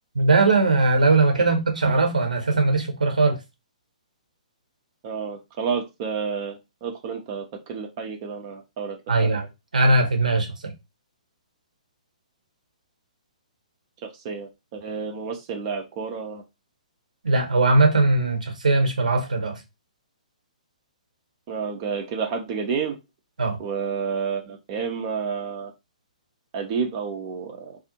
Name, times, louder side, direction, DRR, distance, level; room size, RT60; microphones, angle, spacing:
voice 1, 0.1-3.4 9.1-9.4 9.7-10.7 17.2-19.6 23.4-23.6, right 3 dB, 75° right, 0.8 m, -20 dB
voice 2, 5.0-9.5 14.0-16.4 21.5-23.0 23.6-25.7 26.5-27.8, right 6 dB, 35° right, 0.5 m, -30 dB
2.3 x 2.0 x 2.9 m
figure-of-eight pair, 120°, 4 cm